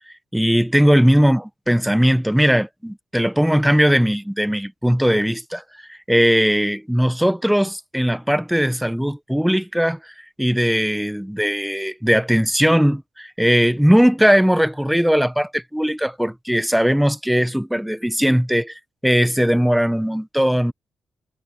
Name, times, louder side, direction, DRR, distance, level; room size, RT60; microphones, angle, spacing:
voice 1, 0.3-5.6 5.9-20.7, equal, 5° right, 1.1 m, -19 dB
cardioid pair, 80°, 0 cm